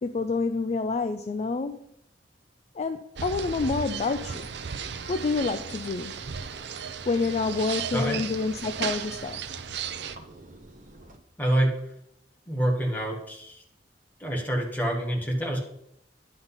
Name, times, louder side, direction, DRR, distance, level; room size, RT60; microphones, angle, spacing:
voice 1, 0.0-1.8 2.7-4.5 5.1-6.1 7.1-9.5, left 4 dB, 40° left, 8 dB, 0.4 m, -28 dB
sound 1, 3.2-10.2, right 7 dB, 70° right, 0.6 m, -35 dB
sound 2, 4.2-11.2, right 2 dB, 45° right, 1.2 m, -49 dB
voice 2, 7.9-8.2 11.4-11.7 12.5-13.6 14.2-15.6, right 1 dB, 10° left, -1 dB, 1.9 m, -26 dB
10.5 x 4.0 x 5.6 m, 0.73 s
head